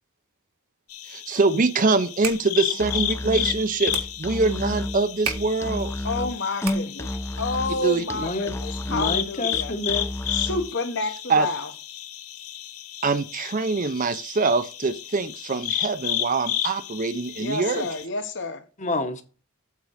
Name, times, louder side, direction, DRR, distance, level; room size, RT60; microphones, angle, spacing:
sound 1, 0.9-18.0, left 12 dB, 85° left, 0.8 m, -33 dB
voice 1, 1.1-5.9 7.8-8.0 11.3-11.5 13.0-17.9, right 3 dB, 40° right, 0.5 m, -24 dB
sound 2, 2.0-7.2, right 6 dB, 85° right, 1.6 m, -37 dB
Musical instrument, 2.7-10.7, left 1 dB, 10° left, 0.5 m, -32 dB
voice 2, 6.0-7.1 7.4-9.7 10.3-11.7 17.4-18.6, left 2 dB, 55° left, 1.2 m, -29 dB
voice 3, 8.1-10.1 18.8-19.2, left 2 dB, 35° left, 1.1 m, -29 dB
8.3 x 3.8 x 6.3 m
head